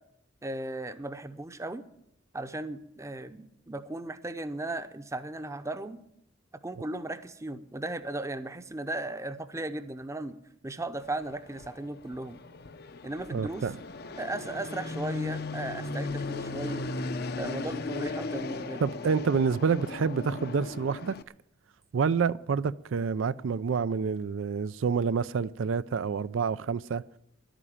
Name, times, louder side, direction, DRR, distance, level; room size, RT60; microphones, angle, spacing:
voice 1, 0.4-1.8 2.3-6.0 6.6-10.4 10.6-12.4 13.0-13.7 14.2-16.8 17.4-18.8, right 2 dB, 15° right, 0.7 m, -36 dB
Fixed-wing aircraft airplane, 11.0-21.2, left 3 dB, 55° left, 0.7 m, -37 dB
voice 2, 13.3-13.8 18.8-21.2 21.9-27.0, right 5 dB, 85° right, 0.4 m, -28 dB
11.0 x 9.0 x 10.0 m
head